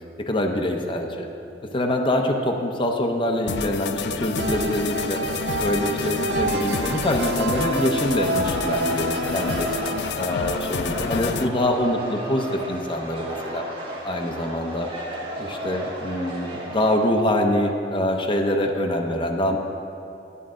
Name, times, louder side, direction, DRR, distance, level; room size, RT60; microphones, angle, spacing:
voice 1, 0.2-1.3 1.7-5.2 5.6-9.7 10.1-13.7 14.0-14.9 15.4-19.6, left 1 dB, 30° left, 2 dB, 0.7 m, -25 dB
sound 1, 3.5-11.5, left 5 dB, 65° left, 0.4 m, -29 dB
sound 2, 4.4-10.0, right 2 dB, 65° right, 0.4 m, -28 dB
sound 3, 5.9-16.9, equal, 30° right, 1.8 m, -34 dB
11.5 x 11.0 x 3.7 m, 2.8 s
head